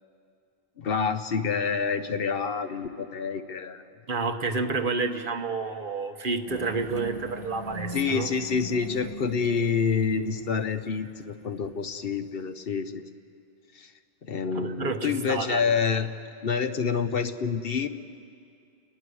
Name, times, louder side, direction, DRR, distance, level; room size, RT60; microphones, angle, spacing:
voice 1, 0.8-3.9 7.9-13.0 13.7-13.9 14.2-16.1 16.4-17.9, left 5 dB, 60° left, 10 dB, 1.0 m, -27 dB
voice 2, 4.1-8.3 14.5-15.6, right 4 dB, 55° right, 6 dB, 1.2 m, -29 dB
sound 1, 6.5-11.6, right 1 dB, 30° left, 1.9 m, -41 dB
30.0 x 11.5 x 9.9 m, 2.4 s
omnidirectional pair, 1.1 m